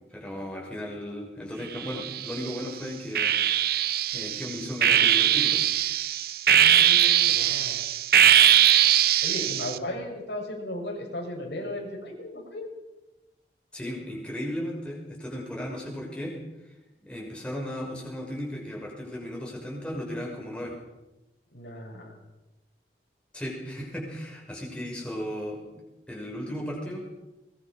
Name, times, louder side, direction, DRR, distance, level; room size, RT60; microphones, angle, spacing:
voice 1, 0.1-3.6 4.1-5.6 13.7-16.3 17.0-20.7 23.3-25.6 26.1-27.0, equal, 5° left, -2 dB, 6.3 m, -35 dB
sound 1, 1.8-2.5 3.2-9.8, right 10 dB, 55° right, 0.8 m, -21 dB
voice 2, 6.5-7.8 9.2-12.7 21.5-22.2, left 1 dB, 80° left, -1 dB, 7.7 m, -36 dB
22.5 x 21.5 x 6.2 m, 1.0 s
head